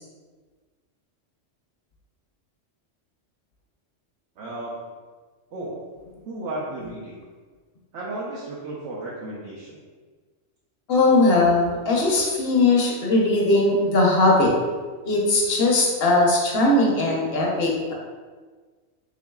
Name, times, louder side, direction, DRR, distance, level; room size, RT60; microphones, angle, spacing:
voice 1, 4.4-4.7 5.5-5.7 6.2-7.2 7.9-9.8, right 2 dB, 70° right, -6 dB, 1.0 m, -33 dB
voice 2, 10.9-14.5 15.0-17.9, left 2 dB, 55° left, -2 dB, 0.9 m, -19 dB
3.9 x 3.5 x 2.3 m, 1.4 s
omnidirectional pair, 1.3 m